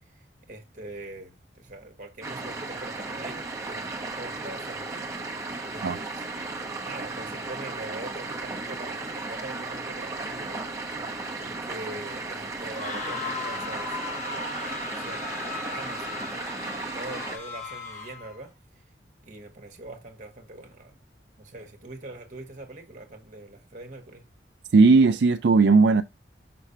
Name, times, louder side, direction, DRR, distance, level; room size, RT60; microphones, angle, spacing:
voice 1, 0.1-6.2 6.8-10.9 11.4-18.5 19.2-21.0 21.4-24.3, right 2 dB, 45° right, 1.3 m, -43 dB
sound 1, 2.2-17.4, right 3 dB, 15° right, 1.1 m, -35 dB
sound 2, 12.6-18.4, left 4 dB, 40° left, 1.1 m, -37 dB
voice 2, 24.7-26.0, right 4 dB, 70° right, 0.4 m, -17 dB
6.0 x 3.3 x 5.6 m
head